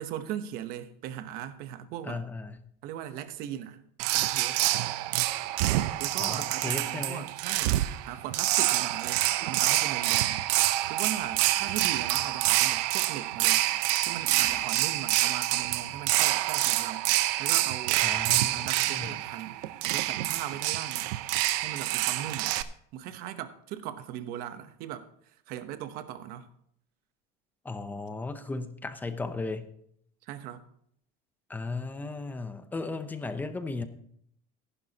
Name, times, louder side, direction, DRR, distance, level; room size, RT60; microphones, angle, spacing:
voice 1, 0.0-2.2 2.8-3.8 4.1-4.6 6.0-10.4 10.9-13.6 14.1-17.1 17.4-18.0 18.5-19.6 19.8-21.1 21.6-22.6 22.9-25.1 25.5-26.5 30.2-30.6, right 11 dB, 50° right, 0.9 m, -39 dB
voice 2, 2.0-2.6 6.2-7.2 18.0-19.2 27.6-29.7 31.5-33.8, left 3 dB, 10° left, 0.6 m, -36 dB
sound 1, 4.0-22.6, right 16 dB, 85° right, 0.6 m, -27 dB
sound 2, 11.2-12.7 13.8-16.9, right 2 dB, 20° right, 2.3 m, -51 dB
15.0 x 11.0 x 2.9 m
cardioid pair, 170°, 20 cm